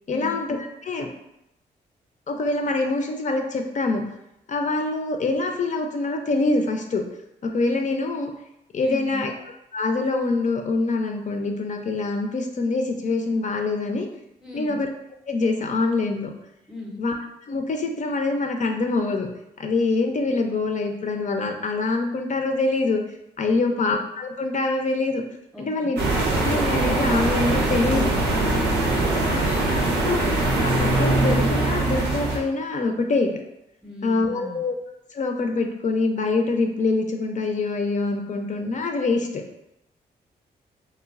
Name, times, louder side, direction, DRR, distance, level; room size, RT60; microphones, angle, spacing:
voice 1, 0.1-1.1 2.3-4.0 4.5-7.0 7.4-8.3 8.7-9.3 9.7-14.1 14.5-14.9 15.3-16.3 17.0-17.2 17.5-19.3 19.6-23.0 23.4-25.2 25.6-28.1 29.3-29.4 29.7-30.2 30.6-33.4 34.0-34.8 35.1-39.4, left 3 dB, 45° left, 4 dB, 0.5 m, -25 dB
voice 2, 8.8-9.3 14.4-14.8 16.7-17.0 25.5-25.9 28.9-29.6 33.8-34.6, left 2 dB, 5° right, -1 dB, 0.7 m, -37 dB
sound 1, 26.0-32.4, right 2 dB, 90° right, 0.6 m, -22 dB
3.0 x 2.1 x 2.5 m, 0.85 s
supercardioid pair, 50°, 18 cm